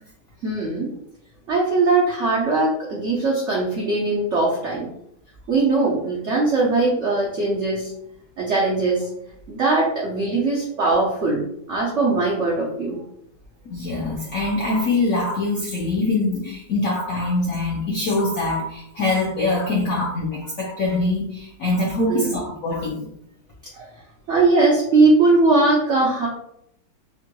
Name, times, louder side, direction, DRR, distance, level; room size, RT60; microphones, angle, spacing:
voice 1, 0.4-0.9 1.5-4.9 5.5-7.9 8.4-9.0 9.5-13.0 22.1-22.4 23.8-23.9 24.3-26.3, right 3 dB, 85° right, -4 dB, 0.6 m, -20 dB
voice 2, 13.7-23.1, left 2 dB, 75° left, -3 dB, 0.7 m, -23 dB
3.7 x 2.2 x 2.8 m, 0.73 s
omnidirectional pair, 2.1 m